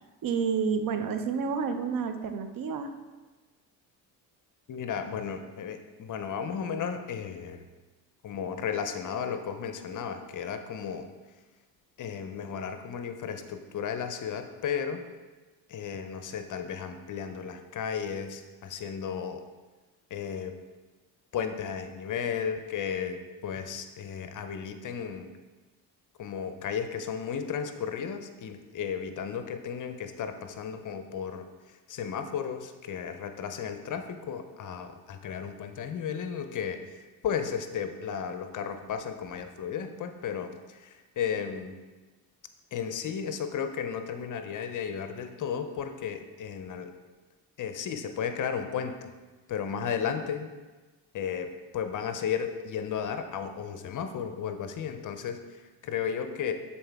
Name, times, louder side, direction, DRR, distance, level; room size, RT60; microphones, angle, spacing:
voice 1, 0.2-2.9, right 6 dB, 50° right, 8 dB, 0.6 m, -29 dB
voice 2, 4.7-7.6 8.2-11.1 12.0-15.0 15.7-19.4 20.1-20.5 21.3-25.3 26.2-31.5 31.9-36.8 37.2-41.8 42.7-46.9 47.6-49.1 49.5-50.5 51.1-56.5, left 7 dB, 45° left, 8 dB, 0.6 m, -34 dB
7.6 x 4.0 x 3.5 m, 1.3 s
supercardioid pair, 80°, 43 cm